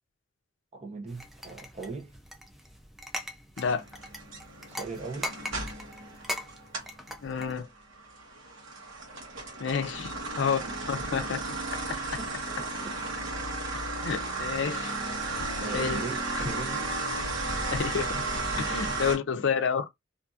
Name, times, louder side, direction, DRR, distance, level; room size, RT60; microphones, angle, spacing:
voice 1, 0.7-2.2 4.7-5.3 12.1-12.3 15.6-16.9 18.7-19.0, right 4 dB, 35° right, 0.7 m, -39 dB
sound 1, 1.1-7.6, left 1 dB, ahead, 0.4 m, -41 dB
sound 2, 3.6-7.0 7.4-19.2, right 3 dB, 80° right, 1.0 m, -34 dB
voice 2, 7.2-7.7 9.6-10.6 10.9-11.4 14.0-14.9 15.7-16.0 16.3-16.5 17.7-18.1 18.6-19.9, left 6 dB, 70° left, 0.5 m, -29 dB
2.6 x 2.5 x 2.4 m
head